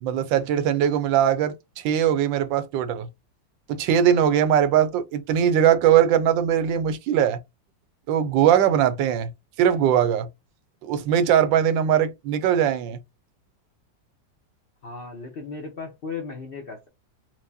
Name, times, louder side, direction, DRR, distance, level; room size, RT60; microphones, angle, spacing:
voice 1, 0.0-3.1 3.7-7.4 8.1-9.3 9.6-10.3 10.8-13.0, right 9 dB, 85° right, 1.3 m, -20 dB
voice 2, 14.8-16.9, left 4 dB, 75° left, 0.5 m, -36 dB
4.5 x 2.1 x 2.7 m
omnidirectional pair, 2.0 m